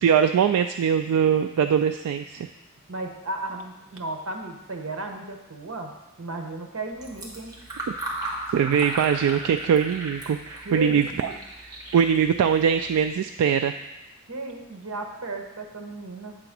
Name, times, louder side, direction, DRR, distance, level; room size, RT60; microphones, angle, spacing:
voice 1, 0.0-2.5 8.5-11.3 11.9-13.8, right 7 dB, 85° right, 8 dB, 0.3 m, -22 dB
voice 2, 2.9-5.9 6.2-7.5 10.6-11.3 14.3-16.4, right 2 dB, 65° right, 3 dB, 1.0 m, -34 dB
Fill (with liquid), 6.9-13.1, right 2 dB, 20° right, 1.3 m, -37 dB
8.1 x 3.9 x 6.0 m, 0.95 s
head